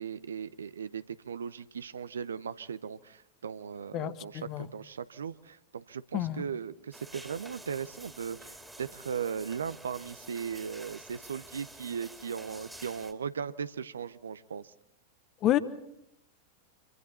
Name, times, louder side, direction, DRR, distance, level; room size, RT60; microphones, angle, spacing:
voice 1, 0.0-14.7, right 7 dB, 70° right, 15 dB, 0.7 m, -38 dB
voice 2, 3.9-4.7 6.1-6.4 15.4-15.6, left 13 dB, 35° left, 14 dB, 1.1 m, -29 dB
sound 1, 6.9-13.1, right 1 dB, 5° right, 2.3 m, -49 dB
26.0 x 24.5 x 4.3 m, 0.82 s
figure-of-eight pair, 90°, 0 cm